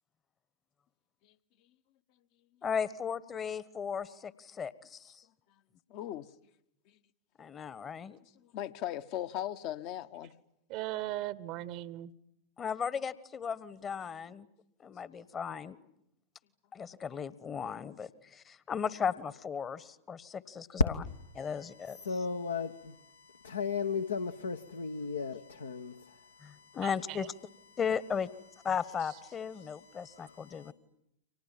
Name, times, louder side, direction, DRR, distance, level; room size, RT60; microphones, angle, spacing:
voice 1, 2.6-5.2 7.4-8.2 12.6-14.5 14.8-15.8 16.7-21.0 21.3-22.2 26.4-27.3 27.8-28.3 28.6-30.7, left 7 dB, 25° left, 1.2 m, -36 dB
voice 2, 5.9-6.2 8.4-10.3, left 12 dB, 45° left, 1.1 m, -38 dB
voice 3, 10.7-12.1 26.8-27.3, right 14 dB, 45° right, 1.0 m, -38 dB
voice 4, 22.0-22.9 23.4-26.8 30.0-30.7, left 5 dB, 70° left, 1.1 m, -36 dB
30.0 x 25.0 x 7.4 m
figure-of-eight pair, 90°, 0 cm